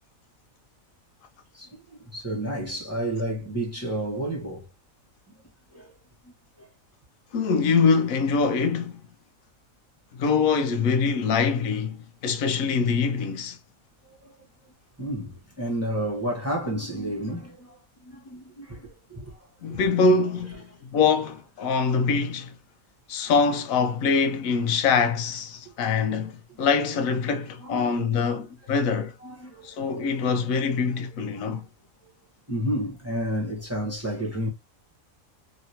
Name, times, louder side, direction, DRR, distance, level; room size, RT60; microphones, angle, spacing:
voice 1, 1.5-4.7 5.3-5.4 5.7-5.9 6.2-6.7 14.1-14.3 15.0-19.4 19.7-19.8 27.6-28.3 29.2-29.8 32.0-32.1 32.5-34.5, right 1 dB, 10° right, 1.0 m, -31 dB
voice 2, 7.3-9.0 10.2-13.6 19.6-20.6 20.9-22.5 23.1-29.1 29.6-31.6, left 5 dB, 80° left, 1.0 m, -24 dB
3.1 x 2.8 x 2.7 m
omnidirectional pair, 1.4 m